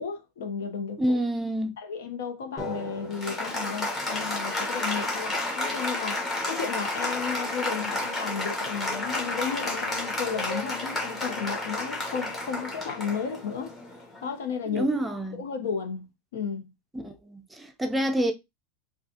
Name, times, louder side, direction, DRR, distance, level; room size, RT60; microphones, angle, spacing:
voice 1, 0.0-1.2 1.8-13.8 14.2-14.9 15.3-16.1 16.3-16.7, left 6 dB, 80° left, 0.9 m, -33 dB
voice 2, 1.0-1.7 14.7-15.4 16.9-18.3, right 1 dB, 5° right, 0.5 m, -28 dB
Applause, 2.6-14.5, left 2 dB, 20° left, 1.2 m, -31 dB
3.5 x 2.4 x 2.7 m
supercardioid pair, 140°, 0 cm